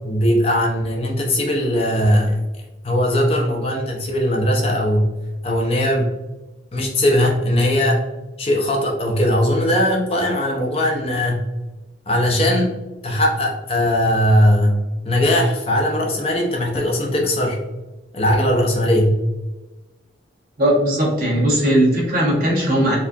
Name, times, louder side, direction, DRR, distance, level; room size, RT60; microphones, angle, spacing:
voice 1, 0.0-2.4 2.8-5.1 5.4-6.1 6.7-8.0 8.4-11.5 12.1-17.6 18.1-19.2, equal, 30° left, 0 dB, 0.5 m, -19 dB
voice 2, 20.6-23.0, right 1 dB, 50° right, -4 dB, 1.3 m, -18 dB
4.2 x 2.4 x 2.7 m, 1.1 s
head